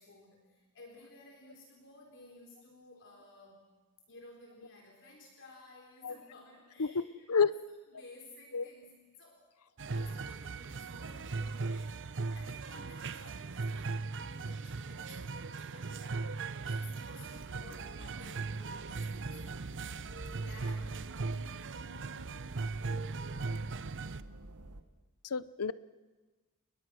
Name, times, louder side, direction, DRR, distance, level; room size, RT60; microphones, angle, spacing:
voice 1, 0.0-3.7 4.1-7.5 7.9-11.9 12.3-16.3 16.6-19.4 20.4-21.1, left 2 dB, 60° left, 0 dB, 4.3 m, -55 dB
sound 1, 9.8-24.2, right 4 dB, 55° right, 0.8 m, -38 dB
sound 2, 17.3-24.8, right 1 dB, 80° right, 1.7 m, -49 dB
voice 2, 25.2-25.7, left 5 dB, 75° left, 17 dB, 0.8 m, -29 dB
30.0 x 22.0 x 6.3 m, 1.3 s
head